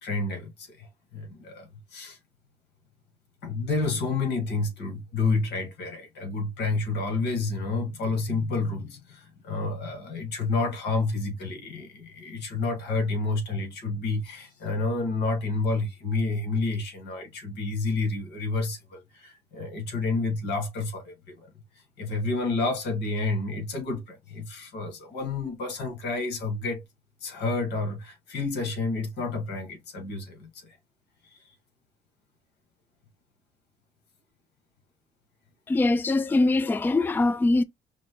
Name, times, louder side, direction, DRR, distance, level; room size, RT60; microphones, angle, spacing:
voice 1, 0.0-2.2 3.4-21.5 21.7-26.8 27.2-30.8 31.2-31.4, left 3 dB, 80° left, 2.0 m, -30 dB
voice 2, 35.7-37.6, left 2 dB, 10° left, 0.3 m, -22 dB
5.2 x 2.9 x 2.3 m
cardioid pair, 90°, 17 cm